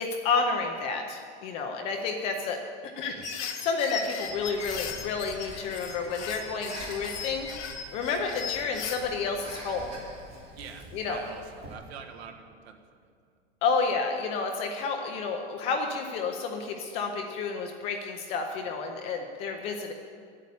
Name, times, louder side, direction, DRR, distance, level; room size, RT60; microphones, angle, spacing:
voice 1, 0.0-2.6 3.0-9.9 10.9-11.2 13.6-19.9, left 4 dB, 20° left, 3 dB, 0.5 m, -30 dB
sound 1, 3.2-9.0, left 7 dB, 85° left, 2.0 m, -38 dB
Breathing, 4.2-11.7, right 1 dB, 15° right, 2.8 m, -46 dB
voice 2, 10.5-13.1, right 6 dB, 65° right, 4 dB, 1.7 m, -45 dB
12.0 x 8.4 x 8.3 m, 2.1 s
supercardioid pair, 175°, 34 cm